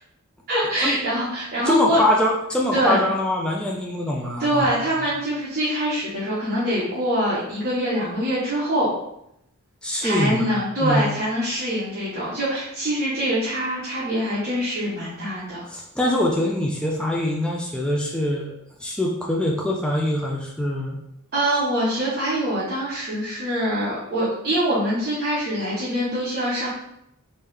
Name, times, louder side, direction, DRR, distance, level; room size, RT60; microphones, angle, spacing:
voice 1, 0.5-2.0 2.7-3.0 4.4-8.9 10.0-15.6 21.3-26.7, equal, 45° right, -8 dB, 0.9 m, -24 dB
voice 2, 1.7-4.6 9.8-10.5 10.8-11.1 15.7-18.6 18.8-21.0, left 1 dB, 5° left, -2 dB, 0.4 m, -23 dB
3.5 x 2.7 x 3.3 m, 0.78 s
head